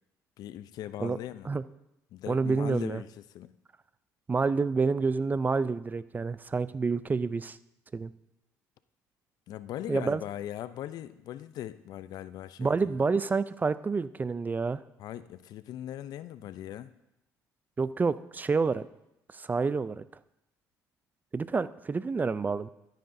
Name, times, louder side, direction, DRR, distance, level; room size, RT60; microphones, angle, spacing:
voice 1, 0.4-1.5 2.1-3.1 3.3-3.5 9.5-12.9 15.0-16.9, left 12 dB, 65° left, 14 dB, 0.5 m, -39 dB
voice 2, 2.3-3.0 4.3-7.6 7.9-8.1 9.9-10.2 12.6-14.8 17.8-18.9 19.3-20.0 21.3-22.7, right 4 dB, 25° right, 16 dB, 0.4 m, -28 dB
13.5 x 9.2 x 2.6 m, 0.86 s
supercardioid pair, 80°, 7 cm